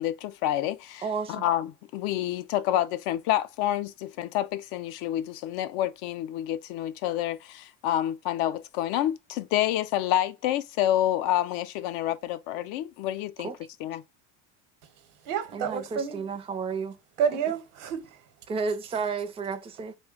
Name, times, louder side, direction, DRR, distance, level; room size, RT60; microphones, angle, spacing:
voice 1, 0.0-13.5 13.8-14.0, left 12 dB, 70° left, 0.5 m, -28 dB
voice 2, 1.0-1.4 13.4-13.6 15.5-17.0 18.5-19.9, right 5 dB, 15° right, 0.4 m, -32 dB
voice 3, 15.2-16.2 17.2-18.2, right 7 dB, 85° right, 0.9 m, -29 dB
3.3 x 2.2 x 3.6 m
cardioid pair, 125°, 37 cm